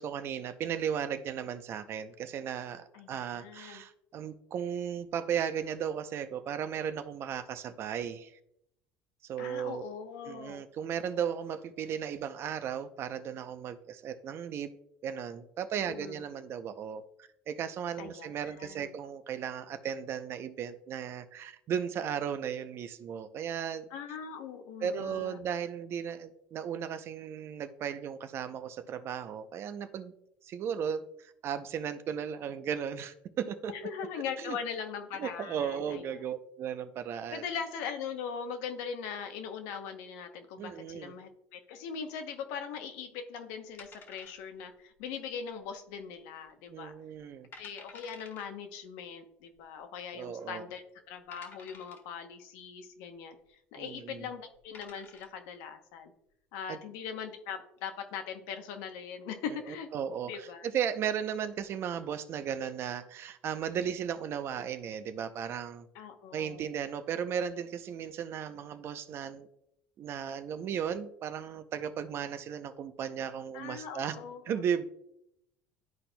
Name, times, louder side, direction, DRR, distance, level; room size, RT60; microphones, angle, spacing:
voice 1, 0.0-8.3 9.2-9.8 10.3-14.8 15.0-17.0 17.5-23.9 24.8-30.1 30.4-33.7 34.4-34.6 35.2-37.4 40.6-41.1 46.7-47.5 50.1-50.7 53.8-54.3 56.7-56.8 59.5-59.6 59.9-65.9 66.3-69.5 70.0-74.2 74.5-74.8, right 8 dB, 50° right, 10 dB, 0.6 m, -35 dB
voice 2, 2.9-3.8 9.4-10.6 15.9-16.2 18.0-19.0 23.9-25.4 33.7-36.1 37.3-46.9 47.6-56.1 56.5-59.9 60.2-60.7 65.9-66.6 73.5-74.6, left 7 dB, 85° left, 6 dB, 0.8 m, -41 dB
sound 1, 43.8-44.7 45.0-45.1 45.7-46.1 46.5-46.6 47.2-47.3 47.5-48.5 49.6-49.7 50.4-50.5 51.3-52.1 54.0-54.2 54.5-55.4, left 4 dB, 45° left, 1.4 m, -52 dB
12.0 x 4.2 x 2.2 m, 0.77 s
supercardioid pair, 105°, 5 cm